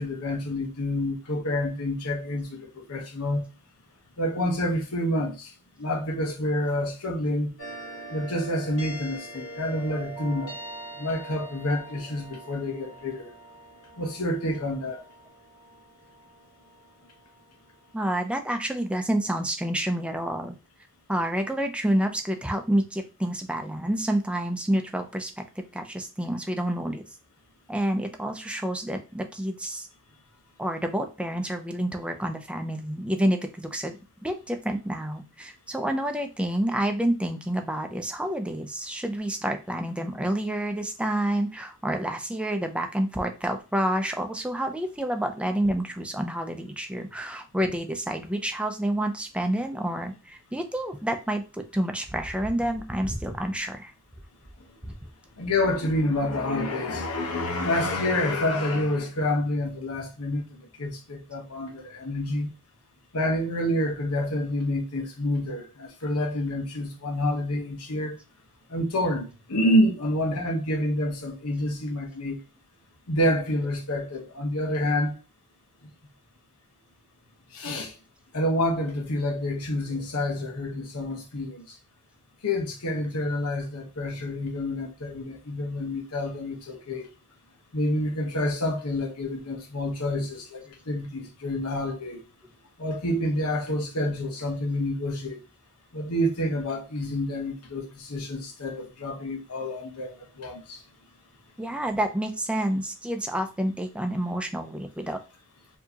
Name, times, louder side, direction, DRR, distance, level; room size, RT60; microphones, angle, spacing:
voice 1, 0.0-3.5 4.2-5.5 5.8-7.5 8.1-10.5 11.0-13.3 14.0-15.0 55.4-60.4 60.8-62.5 63.1-68.2 68.7-72.4 73.1-75.1 77.5-77.9 78.3-81.7 82.4-87.1 87.7-92.2 92.8-95.4 95.9-100.8, left 1 dB, 90° left, 1.0 m, -28 dB
sound 1, 7.6-18.3, right 2 dB, 60° left, 1.9 m, -43 dB
voice 2, 17.9-20.6 21.1-27.0 27.7-29.9 30.6-34.0 34.2-53.9 54.8-54.9 90.2-90.3 101.6-105.2, right 1 dB, 5° right, 0.5 m, -28 dB
4.5 x 2.8 x 2.8 m
head